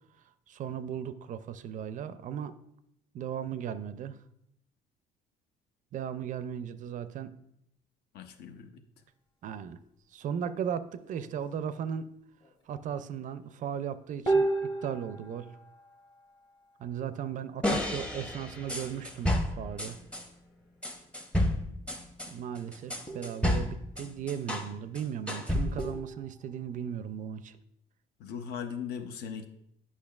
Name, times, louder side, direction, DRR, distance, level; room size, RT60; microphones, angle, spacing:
voice 1, 0.5-2.5 3.1-4.2 5.9-7.3 9.4-9.8 10.1-12.1 12.7-15.5 16.8-20.0 22.3-27.6, right 8 dB, 50° right, 12 dB, 0.4 m, -36 dB
voice 2, 8.1-8.8 28.2-29.5, left 7 dB, 75° left, 8 dB, 0.6 m, -39 dB
sound 1, 10.2-11.5 11.9-12.1 12.4-13.7 14.2-17.4 18.0-18.8 21.8-21.9 23.1-23.7 24.7-24.8 25.8-26.9, right 3 dB, 25° left, 1.0 m, -36 dB
sound 2, 17.6-20.3 20.8-24.7 25.0-26.0, left 1 dB, 5° left, 0.6 m, -31 dB
8.6 x 5.5 x 2.3 m, 0.76 s
cardioid pair, 110°, 17 cm